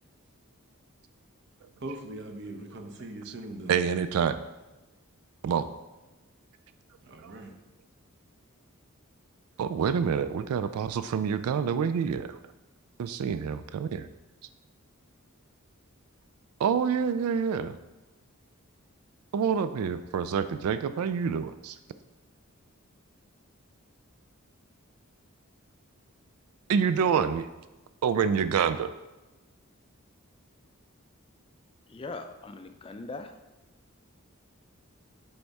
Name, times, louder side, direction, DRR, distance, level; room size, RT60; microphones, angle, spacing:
voice 1, 1.8-3.8 7.0-7.5, right 1 dB, 50° right, 3 dB, 0.8 m, -40 dB
voice 2, 3.7-4.4 5.4-5.7 7.2-7.3 9.6-12.4 13.0-14.1 16.6-17.8 19.3-21.8 26.7-27.5 28.0-28.9, right 7 dB, 85° right, 12 dB, 0.3 m, -27 dB
voice 3, 31.9-33.4, left 3 dB, 25° left, 7 dB, 0.3 m, -40 dB
7.8 x 3.5 x 4.1 m, 1.1 s
head